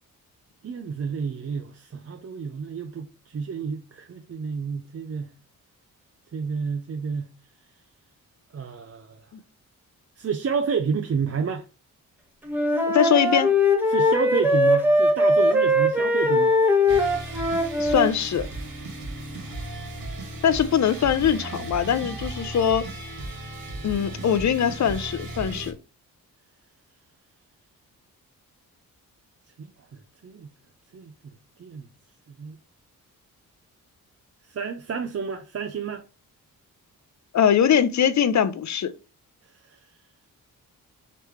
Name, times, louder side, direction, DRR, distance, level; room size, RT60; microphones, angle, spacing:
voice 1, 0.6-5.3 6.3-7.3 8.5-9.2 10.2-11.7 13.9-16.5 24.0-24.2 29.6-30.5 30.9-31.9 32.3-32.6 34.5-36.0 39.6-39.8, right 6 dB, 40° right, 0.6 m, -30 dB
Wind instrument woodwind instrument, 12.5-18.1, left 1 dB, 5° right, 1.2 m, -20 dB
voice 2, 12.9-13.5 17.8-18.5 20.4-22.9 23.8-25.7 37.3-38.9, left 8 dB, 50° left, 0.6 m, -22 dB
sound 1, 16.9-25.7, right 1 dB, 75° right, 2.1 m, -35 dB
4.9 x 3.3 x 3.2 m
cardioid pair, 70°, 36 cm